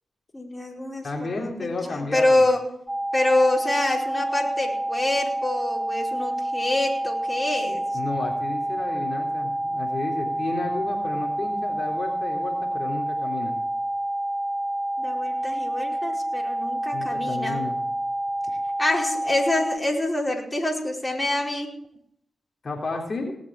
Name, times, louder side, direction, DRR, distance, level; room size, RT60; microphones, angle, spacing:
voice 1, 0.3-2.6 3.1-7.9 15.0-17.7 18.8-21.7, left 1 dB, 20° left, -1 dB, 4.9 m, -26 dB
voice 2, 1.0-2.4 7.9-13.6 16.9-17.8 22.6-23.3, left 3 dB, 55° left, 0 dB, 3.7 m, -32 dB
sound 1, 2.9-19.8, right 1 dB, 10° right, 0.9 m, -28 dB
19.5 x 7.2 x 7.5 m, 0.72 s
supercardioid pair, 40°, 0 cm